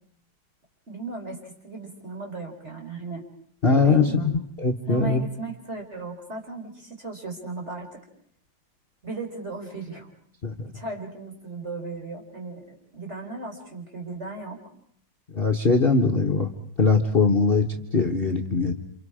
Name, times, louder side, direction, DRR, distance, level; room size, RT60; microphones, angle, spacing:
voice 1, 0.9-3.3 3.8-4.3 4.9-8.0 9.0-10.1 10.7-14.6, right 3 dB, 35° right, 2 dB, 4.4 m, -36 dB
voice 2, 3.6-5.2 10.4-10.7 15.3-16.5 16.8-18.7, left 4 dB, 35° left, 2 dB, 1.2 m, -21 dB
29.5 x 28.0 x 5.0 m, 0.63 s
omnidirectional pair, 2.0 m